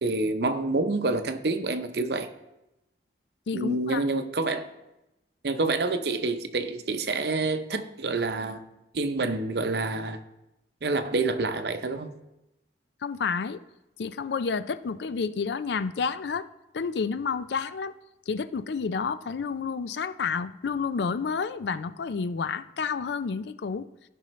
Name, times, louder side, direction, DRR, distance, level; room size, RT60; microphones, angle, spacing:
voice 1, 0.0-2.3 3.5-4.7 5.4-8.6 8.9-10.2 10.8-12.1, right 3 dB, 65° right, 0.7 m, -27 dB
voice 2, 3.5-4.0 13.0-13.6 14.0-16.5 16.7-17.9 18.3-23.9, left 5 dB, 75° left, 0.4 m, -30 dB
16.0 x 5.5 x 3.1 m
head